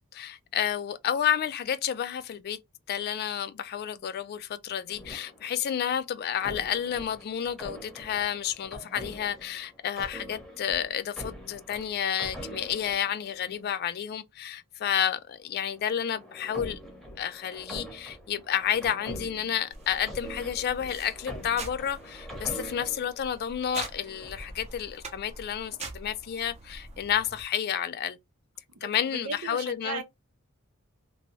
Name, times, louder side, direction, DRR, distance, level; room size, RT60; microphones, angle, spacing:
voice 1, 0.1-2.6 2.9-16.8 17.2-28.2 28.8-30.0, left 9 dB, 45° left, 0.3 m, -30 dB
sound 1, 4.9-5.8 6.4-13.7 15.6-23.2 23.8-24.6, equal, ahead, 0.8 m, -44 dB
sound 2, 19.7-27.4, right 3 dB, 30° right, 0.6 m, -44 dB
voice 2, 29.1-30.0, right 4 dB, 85° right, 0.7 m, -36 dB
2.7 x 2.2 x 3.0 m
head